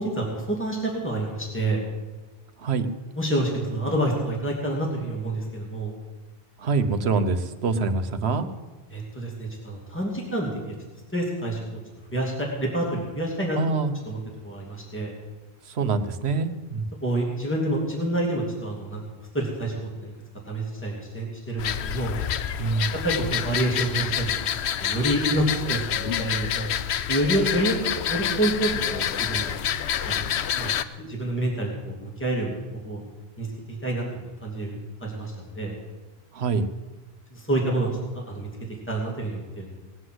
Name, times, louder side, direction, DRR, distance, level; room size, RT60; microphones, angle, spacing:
voice 1, 0.0-1.8 3.2-6.0 8.9-10.5 11.1-11.8 12.1-13.6 14.1-14.2 14.4-15.1 17.0-19.0 19.3-20.1 20.5-22.1 22.9-24.5 24.8-26.7 27.1-27.8 28.1-29.6 30.0-32.6 32.8-33.0 33.4-35.8 37.3-37.9 38.1-39.7, right 1 dB, 10° left, -2 dB, 2.8 m, -28 dB
voice 2, 6.6-8.5 13.6-13.9 15.6-16.9 22.6-23.0 36.3-36.7, right 4 dB, 80° right, 10 dB, 1.2 m, -25 dB
sound 1, 21.6-30.8, left 9 dB, 85° left, 0.9 m, -28 dB
18.5 x 8.0 x 7.9 m, 1.2 s
omnidirectional pair, 1.1 m